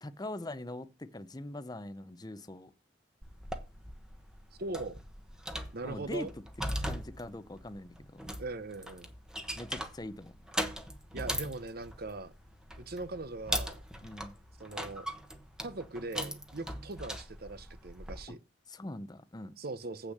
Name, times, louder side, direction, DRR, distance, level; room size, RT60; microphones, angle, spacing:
voice 1, 0.0-2.7 5.8-6.3 6.8-8.2 9.6-10.4 14.0-14.4 18.3-18.4 18.7-19.6, left 1 dB, 20° left, 0.7 m, -42 dB
sound 1, 3.2-18.3, equal, 5° right, 1.0 m, -40 dB
voice 2, 4.6-5.0 5.7-6.3 8.4-9.1 11.1-12.3 12.8-13.8 14.6-15.1 15.6-18.4 19.6-20.1, right 2 dB, 50° right, 0.9 m, -40 dB
8.2 x 6.1 x 6.5 m
head